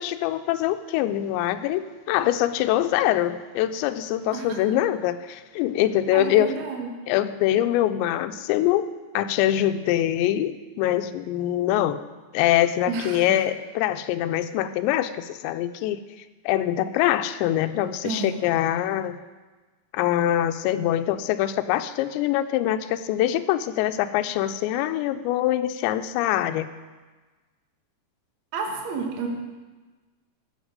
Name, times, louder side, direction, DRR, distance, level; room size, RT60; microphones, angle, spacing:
voice 1, 0.0-6.5 7.1-8.9 9.1-12.0 12.3-16.0 16.5-19.2 19.9-26.7, left 12 dB, 85° left, 10 dB, 2.8 m, -24 dB
voice 2, 6.1-6.9 12.9-13.4 18.0-18.3 28.5-29.3, right 5 dB, 55° right, 1 dB, 2.2 m, -30 dB
13.5 x 8.3 x 5.2 m, 1.3 s
omnidirectional pair, 5.1 m